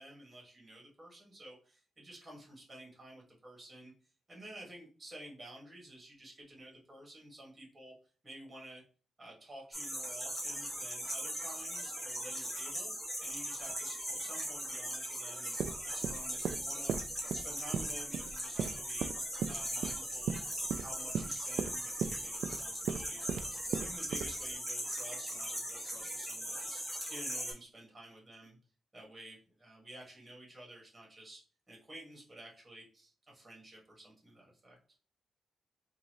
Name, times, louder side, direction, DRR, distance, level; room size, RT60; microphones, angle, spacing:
voice 1, 0.0-3.9 4.3-7.9 8.2-8.8 9.2-12.9 13.2-16.9 17.3-19.1 19.5-23.4 23.8-26.8 27.1-28.6 28.9-31.4 31.7-34.8, right 1 dB, 20° right, -2 dB, 1.9 m, -52 dB
sound 1, 9.7-27.5, equal, 5° left, 1.7 m, -39 dB
sound 2, 15.6-24.5, right 7 dB, 75° right, 0.3 m, -37 dB
3.8 x 2.6 x 3.1 m, 0.38 s
cardioid pair, 105°, 0 cm